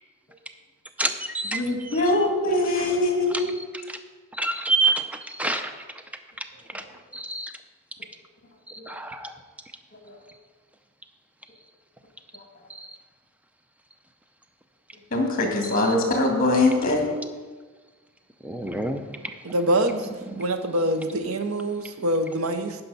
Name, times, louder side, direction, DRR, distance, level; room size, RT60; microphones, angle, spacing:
voice 1, 1.0-2.1 3.3-3.4 3.9-4.0 4.3-5.8 6.7-6.8 7.1-7.5 8.7-9.3 12.7-12.9 15.6-15.9 18.4-19.3 20.4-20.5, right 2 dB, 5° right, 7 dB, 0.5 m, -28 dB
voice 2, 1.5-3.5 15.1-17.1, left 2 dB, 40° left, 2 dB, 1.8 m, -22 dB
voice 3, 19.4-20.1 20.4-22.8, right 1 dB, 75° right, 8 dB, 0.7 m, -25 dB
10.0 x 5.5 x 5.4 m, 1.4 s
head